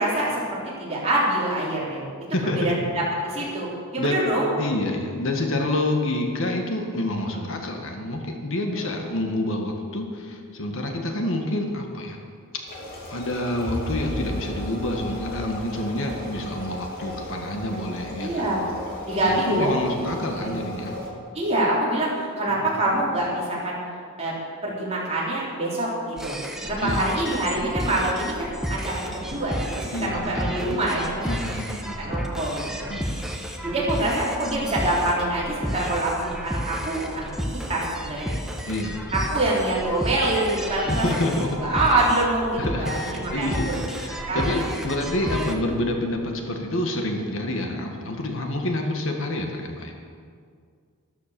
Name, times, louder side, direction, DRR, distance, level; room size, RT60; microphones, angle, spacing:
voice 1, 0.0-2.1 2.5-3.7 3.9-4.5 7.3-7.5 8.8-8.9 18.2-18.6 19.1-19.8 20.3-20.6 21.3-23.8 24.2-24.3 24.6-26.4 26.6-31.3 32.0-32.9 33.6-38.3 39.1-41.1 41.4-43.6 44.3-44.6, right 1 dB, 30° right, -6 dB, 4.5 m, -25 dB
voice 2, 2.3-2.8 4.0-4.2 4.6-12.2 13.1-18.6 19.2-20.9 22.5-22.7 26.8-27.0 29.9-30.4 31.2-32.2 32.9-33.3 38.6-39.0 40.9-41.6 42.6-49.9, left 1 dB, 60° left, 3 dB, 1.7 m, -28 dB
sound 1, 12.7-21.1, equal, 45° left, 2.8 m, -35 dB
sound 2, 26.2-45.6, equal, ahead, 1.3 m, -32 dB
13.0 x 13.0 x 7.0 m, 2.1 s
head